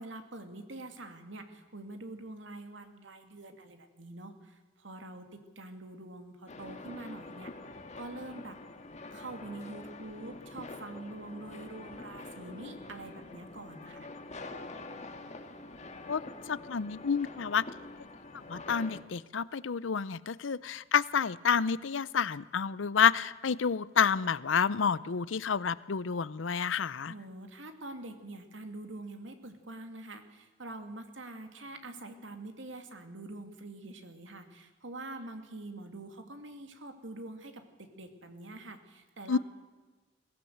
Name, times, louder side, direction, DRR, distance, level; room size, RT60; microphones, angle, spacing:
voice 1, 0.0-7.5 8.0-8.6 9.1-14.1 27.1-39.4, right 2 dB, 80° right, 2.5 m, -45 dB
sound 1, 6.5-19.0, left 2 dB, 40° left, 1.8 m, -46 dB
voice 2, 16.5-17.6 18.5-27.1 39.3-39.4, left 6 dB, 85° left, 0.6 m, -29 dB
22.0 x 16.5 x 7.9 m
head